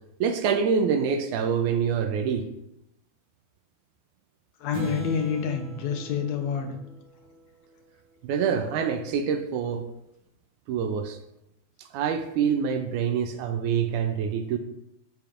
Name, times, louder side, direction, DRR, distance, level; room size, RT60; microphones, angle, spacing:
voice 1, 0.2-2.4 8.2-9.8 10.7-11.2 11.8-14.6, right 7 dB, 85° right, 6 dB, 2.1 m, -26 dB
voice 2, 4.6-6.7, left 7 dB, 70° left, 3 dB, 2.0 m, -28 dB
sound 1, 4.7-7.4, right 2 dB, 65° right, 2.4 m, -37 dB
13.5 x 5.1 x 2.5 m, 0.85 s
omnidirectional pair, 3.4 m